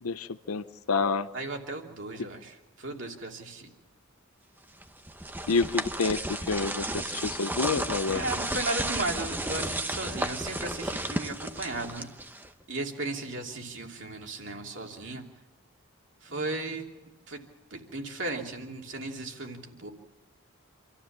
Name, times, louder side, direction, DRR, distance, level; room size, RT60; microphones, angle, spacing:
voice 1, 0.0-1.3 5.5-6.2 6.5-8.2, left 4 dB, 85° left, 11 dB, 0.7 m, -28 dB
voice 2, 1.3-3.7 8.1-12.1 12.7-15.2 16.2-16.8 17.3-17.4 17.7-19.9, right 2 dB, 55° right, 1 dB, 2.8 m, -35 dB
sound 1, 4.8-12.6, right 1 dB, 10° right, 0.8 m, -33 dB
27.0 x 14.5 x 7.3 m, 1.2 s
head